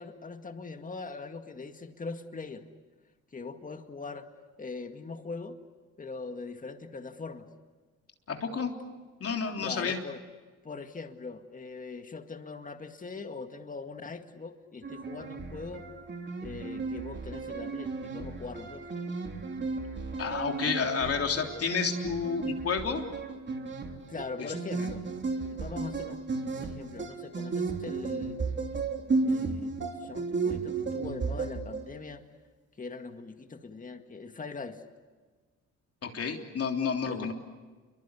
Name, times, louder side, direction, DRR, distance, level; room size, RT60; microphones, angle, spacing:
voice 1, 0.0-2.6 3.3-4.3 4.6-5.6 6.0-7.5 9.6-10.2 10.6-15.9 16.4-18.9 24.1-25.0 25.5-28.4 29.2-32.2 32.8-34.8 37.1-37.3, left 4 dB, 25° left, 6 dB, 2.0 m, -41 dB
voice 2, 8.3-8.7 9.2-10.0 20.2-23.0 24.4-24.5 36.0-37.3, left 6 dB, 50° left, 3 dB, 3.5 m, -30 dB
sound 1, 14.8-32.0, right 4 dB, 40° right, 3.4 m, -34 dB
28.5 x 23.5 x 8.3 m, 1.4 s
cardioid pair, 90°, 30 cm